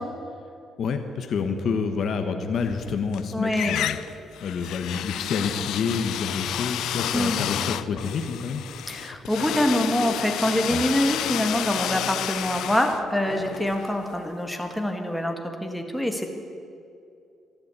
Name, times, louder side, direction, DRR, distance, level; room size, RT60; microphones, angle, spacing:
voice 1, 0.8-4.0 4.4-8.6 10.7-10.8, left 5 dB, 60° left, 6 dB, 1.1 m, -28 dB
sound 1, 2.6-3.2 3.5-14.4, left 11 dB, 85° left, 0.4 m, -31 dB
voice 2, 3.3-3.8 7.1-7.4 8.9-16.3, left 1 dB, ahead, 3 dB, 1.5 m, -25 dB
13.0 x 11.5 x 8.2 m, 2.5 s
cardioid pair, 90°, 0 cm